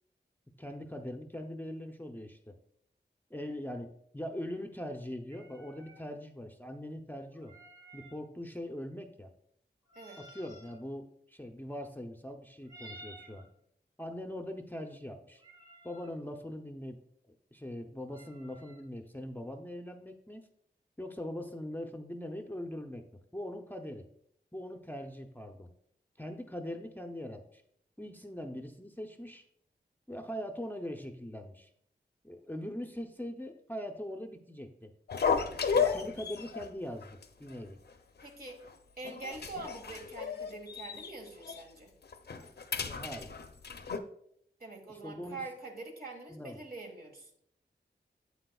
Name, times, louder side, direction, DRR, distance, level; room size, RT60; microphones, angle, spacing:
voice 1, 0.6-2.5 3.3-7.6 7.9-9.3 10.2-13.5 14.0-15.4 15.8-17.0 17.5-20.4 21.0-23.0 23.3-24.1 24.5-25.7 26.2-27.6 28.0-29.4 30.1-31.7 32.2-34.9 35.7-37.8 42.9-43.4 44.9-45.4 46.3-46.6, left 1 dB, 10° left, 5 dB, 0.6 m, -41 dB
sound 1, 5.3-6.0 7.3-8.2 9.9-10.8 12.6-13.5 15.4-16.1 18.1-18.8, right 1 dB, 20° right, 1.3 m, -53 dB
sound 2, 35.1-36.7 37.0-37.2 37.5-37.6 38.2-38.7 39.0-41.1 41.4-41.6 42.0-44.0, left 6 dB, 70° left, 0.6 m, -33 dB
voice 2, 38.2-38.6 39.0-41.9 44.6-47.3, right 3 dB, 60° right, 2 dB, 1.6 m, -44 dB
8.5 x 7.8 x 2.3 m, 0.69 s
wide cardioid pair, 95°, 18 cm